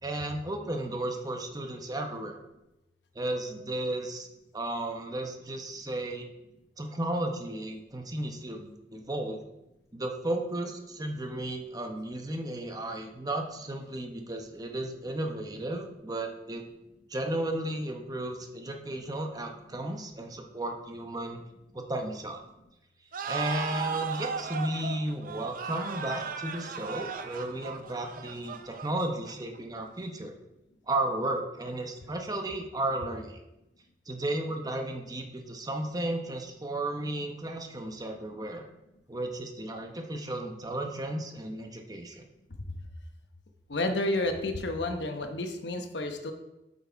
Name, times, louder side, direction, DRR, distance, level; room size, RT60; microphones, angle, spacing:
voice 1, 0.0-2.4 3.1-4.3 4.5-6.3 6.8-9.4 9.9-16.6 17.1-21.4 21.7-22.4 23.3-30.3 30.9-33.4 34.1-38.7 39.1-42.2, right 1 dB, 20° right, 4 dB, 0.8 m, -34 dB
sound 1, 23.1-29.6, right 5 dB, 50° right, 0.6 m, -36 dB
voice 2, 43.7-46.3, left 2 dB, 80° left, 5 dB, 1.0 m, -30 dB
8.3 x 5.7 x 4.5 m, 0.96 s
head